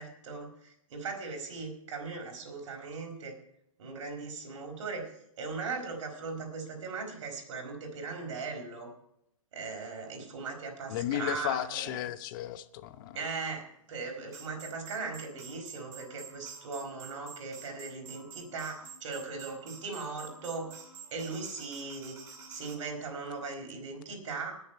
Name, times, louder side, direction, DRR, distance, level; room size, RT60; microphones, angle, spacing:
voice 1, 0.0-3.3 3.8-5.1 5.4-8.9 9.5-12.0 13.1-20.8 21.1-22.1 22.5-24.6, right 4 dB, 55° right, 2 dB, 4.7 m, -39 dB
voice 2, 10.9-13.2, left 12 dB, 35° left, 13 dB, 0.9 m, -34 dB
sound 1, 14.3-22.8, right 6 dB, 15° right, 2.2 m, -49 dB
20.5 x 7.3 x 4.5 m, 0.75 s
hypercardioid pair, 145°, 18 cm